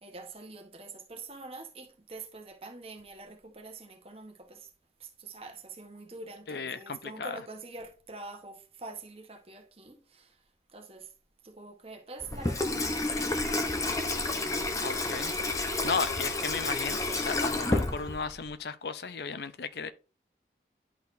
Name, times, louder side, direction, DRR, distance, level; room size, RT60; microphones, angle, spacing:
voice 1, 0.0-4.7 5.0-10.4 10.7-11.1 11.4-13.9, right 3 dB, 35° right, 1.1 m, -45 dB
voice 2, 6.5-7.4 14.4-19.9, left 5 dB, 65° left, 0.5 m, -35 dB
Water tap faucet / Sink (filling or washing), 12.2-18.5, left 2 dB, 20° left, 0.7 m, -30 dB
10.5 x 4.1 x 2.6 m
head